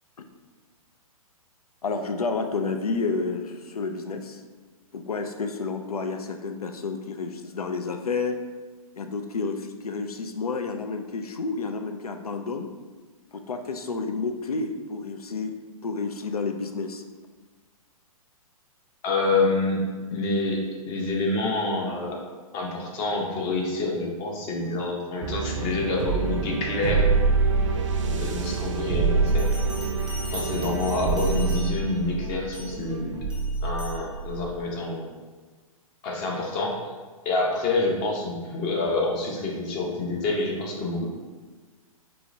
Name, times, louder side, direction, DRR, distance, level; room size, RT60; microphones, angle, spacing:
voice 1, 1.8-4.4 4.9-8.4 8.9-12.7 13.3-15.6 15.8-17.0, left 4 dB, 85° left, 6 dB, 0.4 m, -30 dB
voice 2, 19.0-22.2 22.5-27.1 28.0-29.5 30.3-33.2 33.6-35.1 36.0-36.8 37.2-41.0, left 2 dB, 30° left, -1 dB, 0.8 m, -27 dB
sound 1, 25.2-34.6, right 4 dB, 60° right, 0.5 m, -26 dB
Bell, 29.3-32.0 32.5-32.8 33.3-34.0, equal, 5° right, 0.6 m, -41 dB
4.6 x 3.1 x 2.6 m, 1.4 s
figure-of-eight pair, 120°, 19 cm